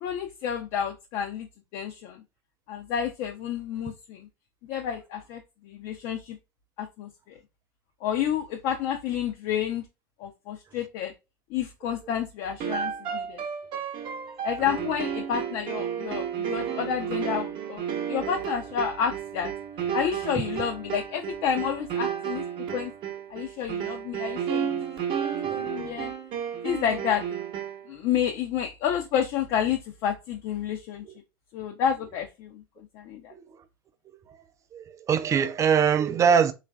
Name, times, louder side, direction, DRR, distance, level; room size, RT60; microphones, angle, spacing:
voice 1, 0.0-1.5 1.7-2.2 2.7-4.3 4.7-6.4 6.8-7.4 8.0-9.8 10.2-11.1 11.5-13.4 14.4-19.5 19.9-22.9 23.3-24.8 25.2-26.1 26.6-27.2 27.9-31.1 31.5-33.3, left 8 dB, 55° left, 0.5 m, -30 dB
sound 1, 12.6-27.9, right 8 dB, 45° right, 0.8 m, -32 dB
voice 2, 25.4-25.8 33.3-33.5 34.7-36.5, right 7 dB, 25° right, 0.4 m, -23 dB
3.1 x 2.4 x 2.2 m
hypercardioid pair, 90°, 12 cm